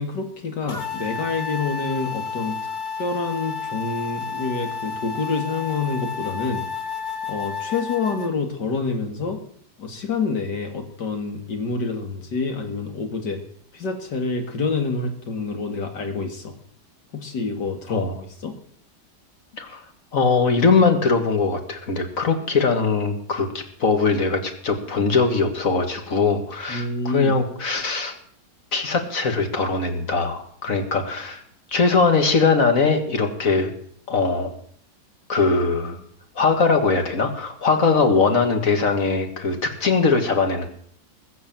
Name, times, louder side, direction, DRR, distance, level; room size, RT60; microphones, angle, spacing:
voice 1, 0.0-2.6 3.0-6.6 7.3-9.4 9.8-13.4 13.7-16.5 17.1-18.1 18.4-18.6 26.7-27.3, left 4 dB, 80° left, 5 dB, 2.7 m, -27 dB
sound 1, 0.7-8.3, left 5 dB, 30° left, 1.2 m, -31 dB
voice 2, 20.1-28.1 28.7-31.4 31.7-33.7 34.1-34.5 35.3-36.0 36.4-40.7, left 4 dB, 50° left, 6 dB, 2.3 m, -21 dB
20.5 x 7.1 x 7.5 m, 0.63 s
omnidirectional pair, 1.8 m